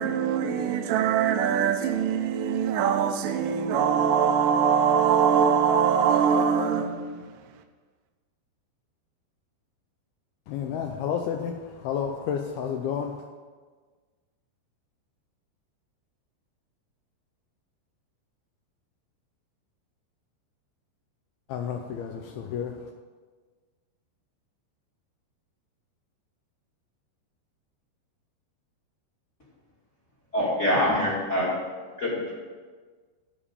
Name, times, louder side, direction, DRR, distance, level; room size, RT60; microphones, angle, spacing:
voice 1, 0.0-7.3, right 7 dB, 85° right, 2.9 m, -23 dB
voice 2, 10.5-13.1 21.5-22.8, left 8 dB, 85° left, 2.3 m, -31 dB
voice 3, 30.3-31.5 32.0-32.3, left 1 dB, 30° left, 1.4 m, -24 dB
12.5 x 5.1 x 6.8 m
omnidirectional pair, 5.0 m